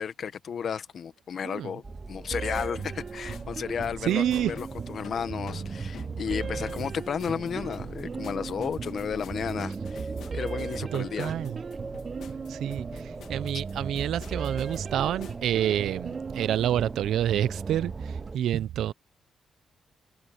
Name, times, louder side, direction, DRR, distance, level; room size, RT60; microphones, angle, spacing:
voice 1, 0.0-11.3, left 7 dB, 55° left, 1.3 m, -33 dB
sound 1, 1.8-18.4, right 3 dB, 25° right, 0.6 m, -41 dB
sound 2, 2.3-18.3, right 5 dB, 45° right, 2.5 m, -38 dB
sound 3, 2.5-15.5, left 10 dB, 80° left, 2.4 m, -50 dB
voice 2, 4.1-4.5 10.9-11.5 12.5-12.9 13.3-17.9 18.3-18.9, right 11 dB, 80° right, 0.6 m, -27 dB
cardioid pair, 95°, 0 cm